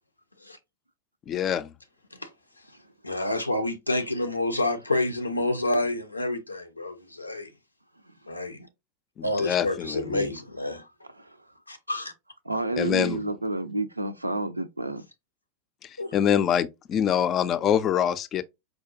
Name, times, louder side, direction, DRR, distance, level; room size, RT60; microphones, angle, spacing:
voice 1, 1.3-1.7 9.2-10.3 12.8-13.2 15.8-18.4, left 9 dB, 30° left, 0.3 m, -25 dB
voice 2, 3.0-7.5 8.3-8.7 9.2-10.9 11.7-12.1 16.0-16.1, left 1 dB, 85° left, 0.5 m, -28 dB
voice 3, 11.1-11.5 12.4-15.1, right 2 dB, 85° right, 0.3 m, -30 dB
4.8 x 2.2 x 2.6 m
figure-of-eight pair, 90°, 0 cm